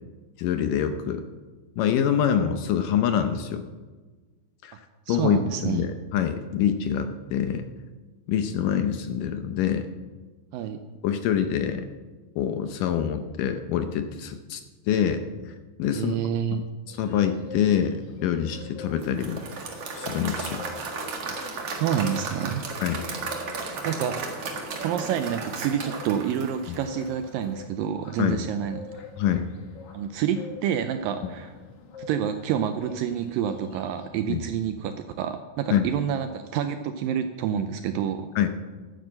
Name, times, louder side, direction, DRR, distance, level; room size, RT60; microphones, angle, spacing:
voice 1, 0.4-1.2 1.8-3.6 4.6-4.7 5.1-7.7 8.3-9.9 11.0-11.9 12.4-14.6 14.9-15.2 15.8-16.2 16.5-19.4 19.9-20.6 22.8-23.0 28.2-28.4 29.2-29.5 34.3-34.4 35.7-35.9 38.4-38.5, left 9 dB, 75° left, 8 dB, 2.1 m, -25 dB
voice 2, 5.1-5.8 10.5-10.8 15.9-16.6 21.3-21.4 21.8-22.6 23.0-23.2 23.6-24.3 24.8-28.8 29.9-31.6 32.0-38.3, right 9 dB, 80° right, 8 dB, 2.2 m, -28 dB
sound 1, 16.9-34.1, left 4 dB, 50° left, 2.2 m, -45 dB
Applause / Crowd, 19.0-27.2, right 4 dB, 50° right, 2.4 m, -34 dB
12.0 x 9.5 x 7.6 m, 1.3 s
omnidirectional pair, 4.4 m